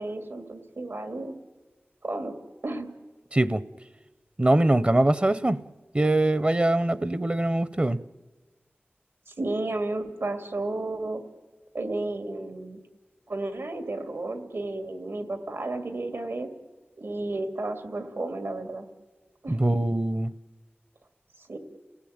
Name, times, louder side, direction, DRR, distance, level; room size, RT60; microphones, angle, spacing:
voice 1, 0.0-1.4 2.0-2.3 2.6-2.9 9.3-11.2 11.7-12.8 13.3-16.5 17.0-18.9 19.4-19.6 21.5-21.6, right 2 dB, 80° right, 2.5 m, -32 dB
voice 2, 3.3-3.6 4.4-5.6 5.9-8.0 19.5-20.3, right 1 dB, 30° right, 0.7 m, -23 dB
29.5 x 16.5 x 8.7 m
wide cardioid pair, 60°, 4 cm